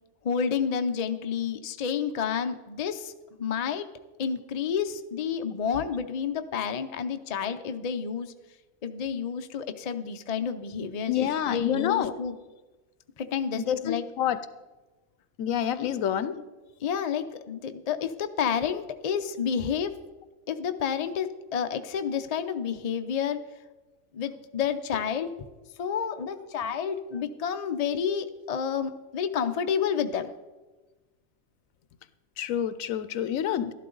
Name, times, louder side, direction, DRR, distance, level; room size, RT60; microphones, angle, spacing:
voice 1, 0.2-3.1 3.4-3.9 4.2-8.3 8.8-12.3 13.2-14.0 15.8-15.9 16.8-19.9 20.5-23.4 24.1-25.3 25.8-30.3, left 7 dB, 50° left, 8 dB, 0.4 m, -30 dB
voice 2, 11.1-12.1 13.6-14.4 15.4-16.4 32.4-33.7, left 10 dB, 75° left, 13 dB, 1.0 m, -28 dB
12.5 x 11.5 x 3.9 m, 1.2 s
omnidirectional pair, 1.5 m